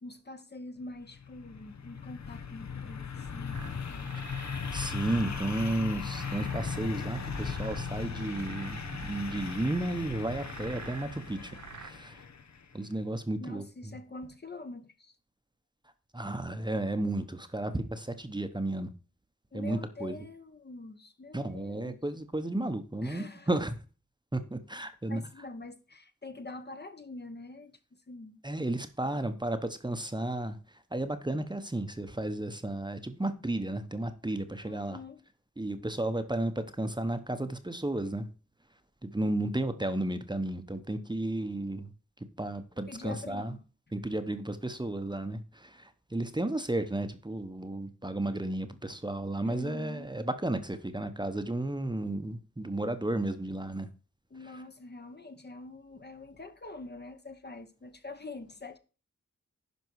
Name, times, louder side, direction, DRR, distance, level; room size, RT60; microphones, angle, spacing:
voice 1, 0.0-4.4 13.4-15.1 19.5-22.0 23.0-23.5 25.1-28.4 34.6-35.2 42.9-43.6 49.4-50.1 54.3-58.8, left 2 dB, 35° left, 1.0 m, -45 dB
sound 1, 1.0-12.6, left 6 dB, 60° left, 1.0 m, -38 dB
sound 2, 3.5-11.9, right 7 dB, 70° right, 0.8 m, -47 dB
voice 2, 4.7-12.2 12.7-14.0 16.1-18.9 19.5-20.2 21.3-23.8 24.3-25.2 28.4-35.0 35.6-38.3 39.0-41.9 42.2-43.6 43.9-53.9, right 1 dB, 15° right, 0.9 m, -33 dB
10.5 x 5.3 x 4.7 m
wide cardioid pair, 80°, 31 cm